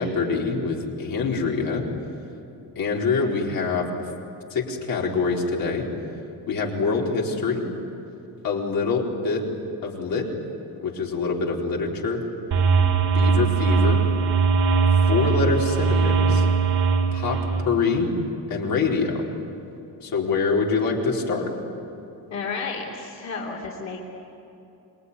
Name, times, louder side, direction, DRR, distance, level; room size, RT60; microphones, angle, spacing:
voice 1, 0.0-1.8 2.8-3.9 4.5-5.9 6.5-7.6 8.4-9.5 9.8-10.3 10.8-12.2 13.1-14.0 15.1-16.5 17.1-18.1 18.5-19.2 20.0-21.5, left 4 dB, 60° left, -2 dB, 4.4 m, -25 dB
sound 1, 12.5-17.6, right 5 dB, 75° right, 3.7 m, -20 dB
voice 2, 22.3-24.0, left 4 dB, 45° left, -3 dB, 3.3 m, -32 dB
27.0 x 22.0 x 9.8 m, 2.9 s
cardioid pair, 145°, 39 cm